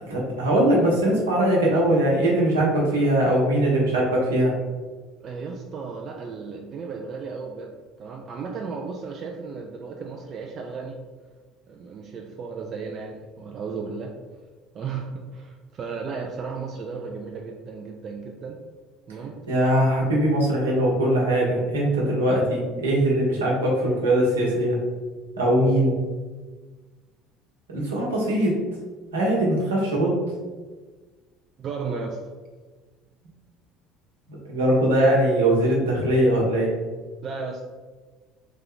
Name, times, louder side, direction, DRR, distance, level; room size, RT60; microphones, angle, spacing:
voice 1, 0.0-4.5 19.5-24.8 25.4-25.9 27.7-28.5 29.1-30.1 34.5-36.7, right 1 dB, 75° right, -3 dB, 1.1 m, -21 dB
voice 2, 2.9-3.2 5.2-7.7 8.0-11.0 11.7-14.1 14.7-18.6 19.1-19.4 31.6-32.2 37.2-37.7, right 5 dB, 40° right, 1 dB, 0.5 m, -34 dB
3.7 x 3.3 x 3.7 m, 1.4 s
figure-of-eight pair, 60°, 0 cm